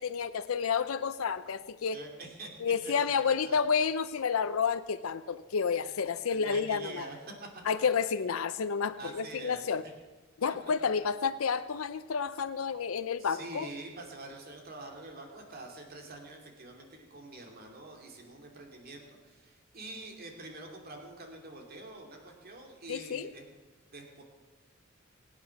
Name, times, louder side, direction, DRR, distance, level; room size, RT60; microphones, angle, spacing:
voice 1, 0.0-2.0 2.6-7.0 7.6-9.8 10.4-13.7 22.9-23.3, left 6 dB, 90° left, 11 dB, 0.5 m, -30 dB
voice 2, 1.9-2.6 3.2-3.6 5.8-5.9 6.3-7.2 9.0-9.9 13.2-23.4 23.9-24.2, right 2 dB, 45° right, 2 dB, 2.8 m, -46 dB
24.0 x 8.5 x 5.9 m, 1.3 s
head